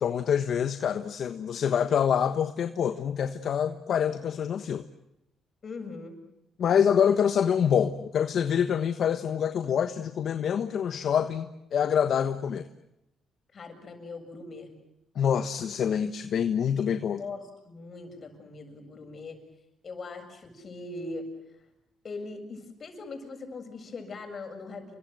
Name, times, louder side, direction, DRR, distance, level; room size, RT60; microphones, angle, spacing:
voice 1, 0.0-4.8 6.6-12.7 15.1-17.2, left 8 dB, 65° left, 9 dB, 1.3 m, -26 dB
voice 2, 5.6-6.2 13.5-14.7 17.2-19.4 19.8-21.3 22.0-24.9, left 3 dB, 45° left, 5 dB, 7.5 m, -40 dB
30.0 x 24.0 x 7.9 m, 0.86 s
cardioid pair, 90°, 0 cm